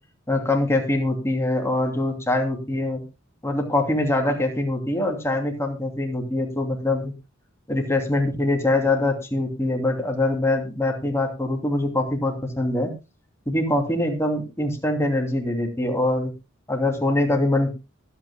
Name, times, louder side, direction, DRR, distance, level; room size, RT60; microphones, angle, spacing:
voice 1, 0.3-3.0 3.4-7.1 7.7-12.9 13.5-16.3 16.7-17.7, left 2 dB, 15° left, 2 dB, 2.8 m, -23 dB
23.5 x 8.8 x 2.3 m, 0.28 s
head